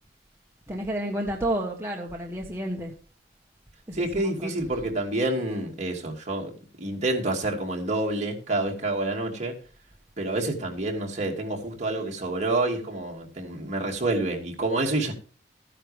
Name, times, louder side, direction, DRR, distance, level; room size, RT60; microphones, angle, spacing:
voice 1, 0.7-2.9 3.9-4.5, right 1 dB, 15° right, -1 dB, 1.4 m, -31 dB
voice 2, 3.9-6.5 6.8-9.5 10.2-15.1, right 2 dB, 40° right, 0 dB, 2.7 m, -28 dB
14.0 x 10.0 x 3.5 m, 0.40 s
head